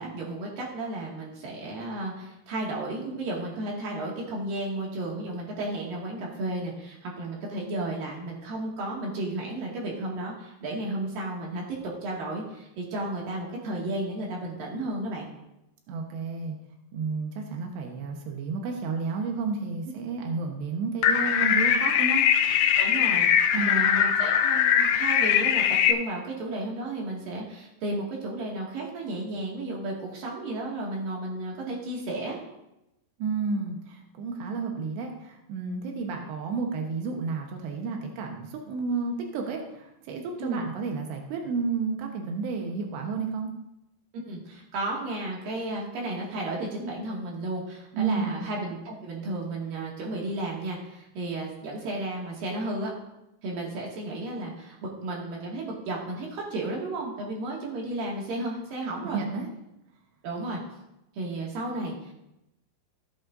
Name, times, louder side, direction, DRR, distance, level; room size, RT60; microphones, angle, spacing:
voice 1, 0.0-11.6 12.0-15.3 22.8-32.4 40.4-40.7 44.2-52.9 53.4-59.2 60.2-60.6 61.1-62.1, right 2 dB, 60° right, -3 dB, 3.6 m, -33 dB
voice 2, 15.9-16.6 16.9-22.2 23.5-23.8 33.2-43.5 47.9-48.4 59.0-59.5, right 4 dB, 90° right, 2 dB, 3.4 m, -31 dB
sound 1, 21.0-25.9, left 9 dB, 80° left, 2.4 m, -22 dB
17.0 x 8.6 x 2.7 m, 0.90 s
omnidirectional pair, 4.8 m